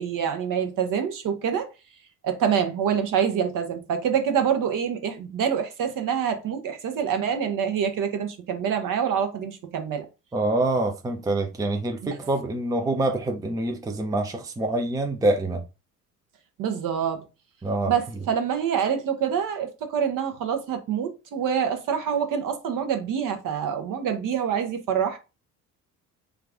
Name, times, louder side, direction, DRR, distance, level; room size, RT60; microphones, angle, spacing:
voice 1, 0.0-1.7 2.2-10.1 16.6-17.2 17.9-25.2, right 8 dB, 40° right, 1.1 m, -26 dB
voice 2, 10.3-15.6 17.6-17.9, right 2 dB, 10° right, 0.7 m, -25 dB
4.5 x 2.5 x 3.5 m
figure-of-eight pair, 55°, 47 cm